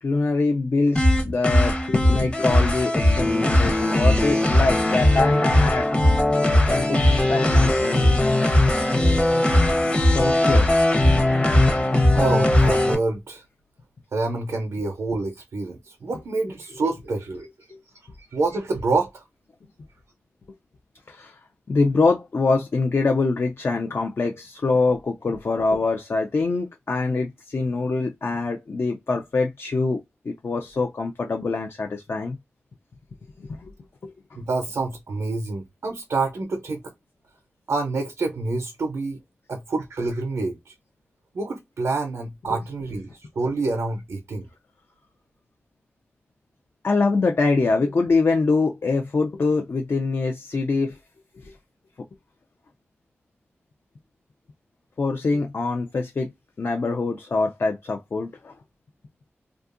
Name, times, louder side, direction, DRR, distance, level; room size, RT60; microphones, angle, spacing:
voice 1, 0.0-5.9 6.7-7.0 7.3-8.1 10.1-10.7 17.7-17.8 21.1-21.4 21.7-30.0 30.2-32.4 33.4-33.7 34.0-34.1 46.8-51.0 51.4-51.6 55.0-56.3 56.6-58.5, left 3 dB, 60° left, 0.4 m, -24 dB
sound 1, 1.0-13.0, left 1 dB, 25° left, 0.7 m, -19 dB
voice 2, 12.1-13.4 14.1-17.5 18.3-19.2 34.4-36.8 37.7-39.2 39.5-40.7 41.3-44.5, right 3 dB, 90° right, 0.5 m, -27 dB
2.7 x 2.3 x 2.4 m
wide cardioid pair, 70°, 5 cm